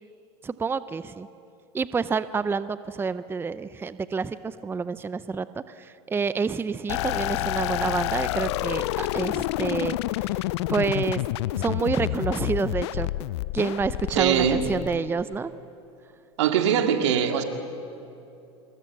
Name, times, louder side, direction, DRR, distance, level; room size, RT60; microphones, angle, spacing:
voice 1, 0.4-1.3 1.7-5.5 5.8-10.3 10.7-11.2 11.5-13.1 13.5-15.5, right 5 dB, 15° right, 14 dB, 0.6 m, -28 dB
sound 1, 6.9-15.4, left 17 dB, 70° left, 0.5 m, -28 dB
voice 2, 14.1-14.6 16.4-17.4, right 8 dB, 80° right, 5 dB, 2.1 m, -22 dB
24.5 x 21.5 x 7.4 m, 2.7 s
hypercardioid pair, 95°, 15 cm